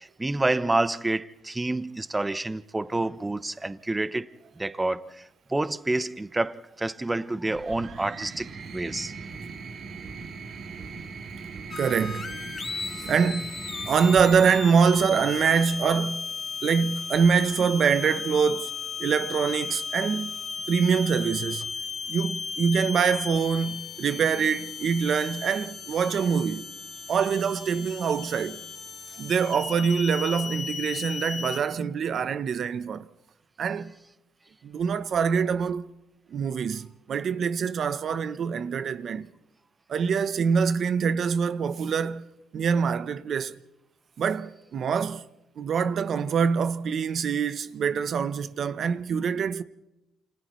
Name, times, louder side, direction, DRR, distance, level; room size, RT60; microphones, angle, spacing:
voice 1, 0.0-9.1, right 2 dB, 15° right, 0.8 m, -28 dB
sound 1, 7.5-16.0 17.2-17.8, right 5 dB, 75° right, 3.7 m, -40 dB
sound 2, 11.7-31.6, left 5 dB, 45° left, 2.1 m, -36 dB
voice 2, 11.8-12.4 13.0-13.6 13.9-16.3 16.6-18.7 19.0-20.4 20.7-21.7 22.1-26.7 27.1-28.6 29.2-33.1 33.6-33.9 34.6-35.9 36.3-39.3 39.9-42.3 42.5-43.6 44.2-45.3 45.6-49.6, right 6 dB, 60° right, 0.8 m, -25 dB
29.5 x 28.5 x 3.2 m
cardioid pair, 90°, 0 cm